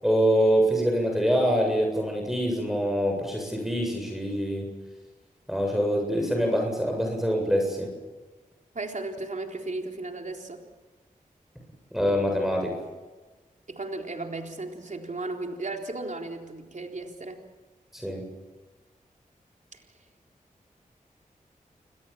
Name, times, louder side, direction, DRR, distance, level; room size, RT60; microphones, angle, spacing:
voice 1, 0.0-4.7 5.5-7.9 11.9-12.8 17.9-18.2, equal, ahead, 2 dB, 7.6 m, -25 dB
voice 2, 8.7-10.6 13.7-17.4 19.7-19.8, right 2 dB, 55° right, 2 dB, 4.0 m, -35 dB
30.0 x 21.0 x 7.3 m, 1.3 s
cardioid pair, 40°, 15 cm